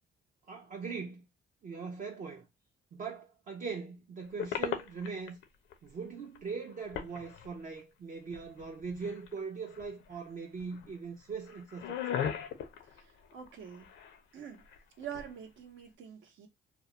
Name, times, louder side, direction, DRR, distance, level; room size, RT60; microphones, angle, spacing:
voice 1, 0.5-1.2 1.6-2.5 2.9-5.4 5.8-12.2, right 5 dB, 40° right, 0.5 m, -41 dB
sound 1, 4.4-5.4 5.7-5.8 6.3-6.4 6.7-7.8 8.3-9.4 9.7-10.2 10.6-10.9 11.3-14.2 14.5-15.3, left 8 dB, 75° left, 0.5 m, -38 dB
voice 2, 12.8-13.9 14.3-14.6 15.0-16.5, right 9 dB, 75° right, 0.7 m, -46 dB
2.3 x 2.1 x 2.8 m
cardioid pair, 90°, 20 cm